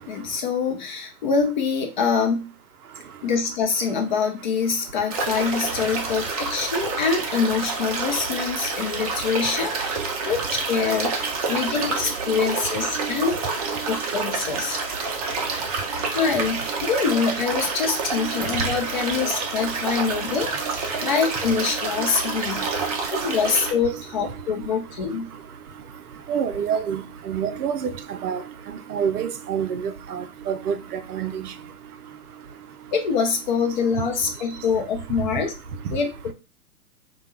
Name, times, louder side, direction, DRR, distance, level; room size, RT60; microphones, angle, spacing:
voice 1, 0.1-2.5 3.2-10.0 10.3-13.4 13.9-14.8 16.1-20.5 21.0-22.6 23.1-25.3 32.9-35.5 35.9-36.1, left 5 dB, 35° left, 0.4 m, -25 dB
sound 1, 5.1-23.7, right 4 dB, 25° right, 0.4 m, -28 dB
voice 2, 26.3-27.0 27.3-27.9 28.2-28.4 28.9-30.7 31.1-31.5, right 8 dB, 80° right, 0.5 m, -26 dB
2.3 x 2.1 x 3.0 m
figure-of-eight pair, 115°, 45 cm